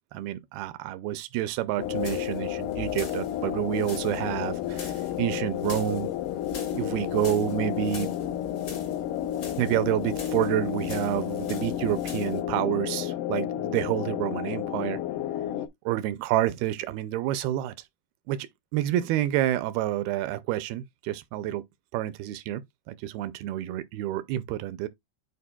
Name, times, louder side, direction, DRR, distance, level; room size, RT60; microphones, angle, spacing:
voice 1, 0.1-6.1 6.7-8.1 9.6-15.0 15.9-17.7 18.3-21.6 21.9-22.6 22.9-24.9, right 13 dB, 80° right, 2.4 m, -29 dB
sound 1, 1.8-15.7, left 11 dB, 90° left, 1.8 m, -31 dB
sound 2, 1.8-12.4, left 2 dB, 60° left, 0.9 m, -45 dB
11.0 x 4.6 x 2.2 m
omnidirectional pair, 4.6 m